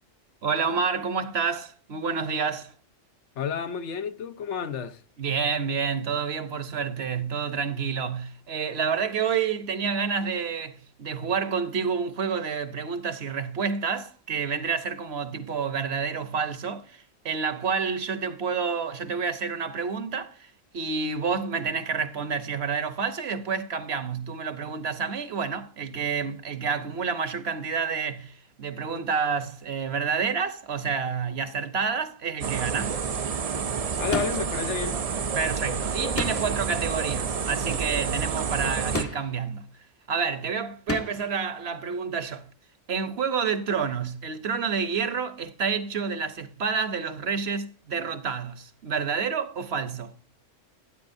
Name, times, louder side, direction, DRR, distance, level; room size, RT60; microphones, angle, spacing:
voice 1, 0.4-2.7 5.2-33.0 35.3-39.7 40.1-42.5 42.9-50.1, right 6 dB, 60° right, 1.1 m, -29 dB
voice 2, 3.4-5.0 33.9-35.0, left 6 dB, 70° left, 1.1 m, -31 dB
sound 1, 32.4-39.0, right 6 dB, 45° right, 0.5 m, -29 dB
sound 2, 34.1-34.7 36.2-36.7 38.9-39.5 40.9-41.4, left 2 dB, 15° left, 0.5 m, -32 dB
12.5 x 9.4 x 2.6 m
omnidirectional pair, 1.3 m